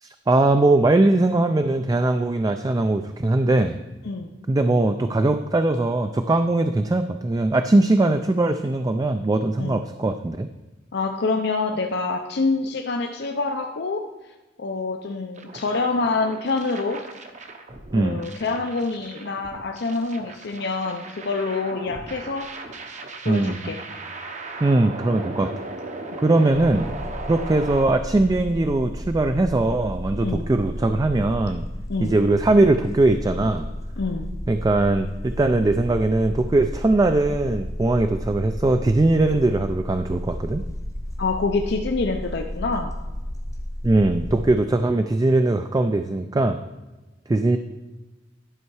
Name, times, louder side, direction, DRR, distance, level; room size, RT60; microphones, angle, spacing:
voice 1, 0.0-3.8 4.5-10.5 17.9-18.2 23.3-23.7 24.6-25.5 26.2-26.9 27.3-31.6 32.0-33.7 34.5-40.6 43.8-46.6 47.3-47.6, right 2 dB, 20° right, 8 dB, 0.3 m, -20 dB
voice 2, 10.9-14.1 14.6-17.0 17.9-22.5 23.2-23.8 30.2-30.5 31.9-32.2 34.0-34.3 41.2-42.9, left 3 dB, 60° left, 3 dB, 0.6 m, -26 dB
sound 1, 15.4-27.8, right 3 dB, 40° right, 0.8 m, -37 dB
BC ferries sounds, 26.5-44.5, equal, 20° left, 0.6 m, -33 dB
11.0 x 5.5 x 4.7 m, 1.1 s
head